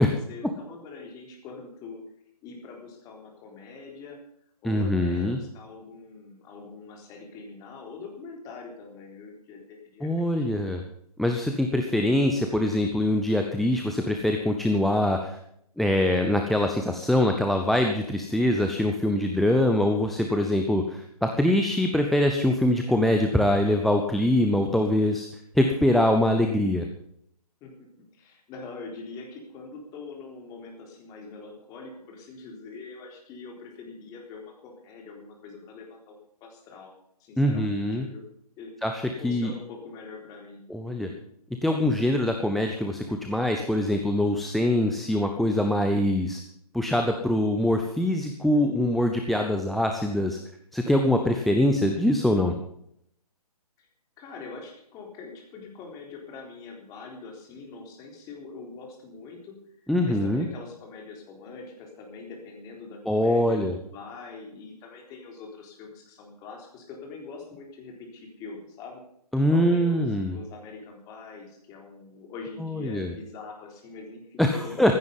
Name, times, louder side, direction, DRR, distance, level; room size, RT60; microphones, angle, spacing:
voice 1, 0.0-2.0 2.4-4.2 4.6-10.5 27.6-36.9 37.2-38.3 38.6-38.9 39.2-41.2 53.8-53.9 54.2-69.0 69.5-75.0, left 4 dB, 20° left, 1 dB, 3.8 m, -43 dB
voice 2, 4.6-5.4 10.0-10.8 11.2-15.4 15.8-25.3 25.5-26.9 37.4-38.1 38.8-39.5 40.7-41.1 41.6-46.4 46.7-50.4 50.7-52.5 59.9-60.5 63.1-63.8 69.3-70.4 72.6-73.1 74.4-74.9, left 1 dB, ahead, 4 dB, 0.7 m, -23 dB
15.5 x 13.5 x 5.4 m, 0.71 s
figure-of-eight pair, 135°, 20 cm